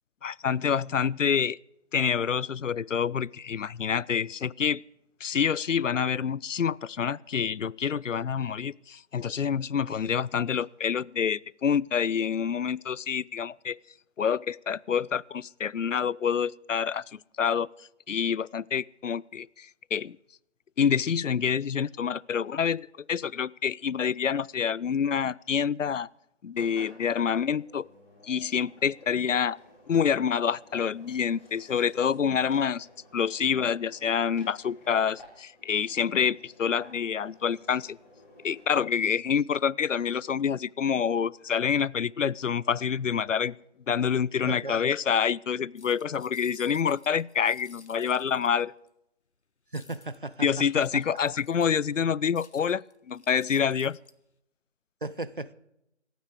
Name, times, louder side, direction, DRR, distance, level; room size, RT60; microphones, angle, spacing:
voice 1, 0.2-1.6 1.9-4.8 5.2-13.8 14.2-17.7 18.1-20.2 20.8-26.1 26.4-27.9 28.2-29.6 29.9-32.9 33.1-38.0 38.4-43.6 43.9-48.7 50.4-54.0, left 7 dB, 90° left, 24 dB, 0.5 m, -27 dB
Engine, 26.5-38.6, left 1 dB, 10° left, 3.3 m, -54 dB
voice 2, 44.4-44.8 49.7-50.5 55.0-55.5, right 2 dB, 45° right, 17 dB, 0.6 m, -35 dB
sound 1, 45.8-48.9 49.7-52.0 52.4-54.1, left 4 dB, 65° left, 1.0 m, -55 dB
27.0 x 9.3 x 4.9 m, 0.82 s
figure-of-eight pair, 165°, 36 cm